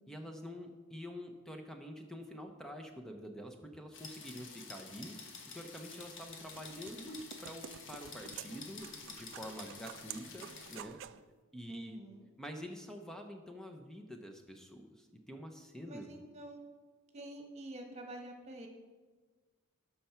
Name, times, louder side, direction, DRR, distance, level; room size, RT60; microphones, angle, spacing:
voice 1, 0.1-5.2 5.5-11.0 11.5-12.0 12.4-16.1, equal, 5° left, 4 dB, 0.7 m, -47 dB
sound 1, 3.9-10.8, left 5 dB, 60° left, 1.3 m, -50 dB
sound 2, 6.0-11.2, right 10 dB, 60° right, 0.3 m, -50 dB
voice 2, 11.7-12.2 15.8-16.6 17.1-18.7, right 1 dB, 30° right, 3 dB, 1.3 m, -47 dB
12.0 x 5.7 x 4.4 m, 1.4 s
head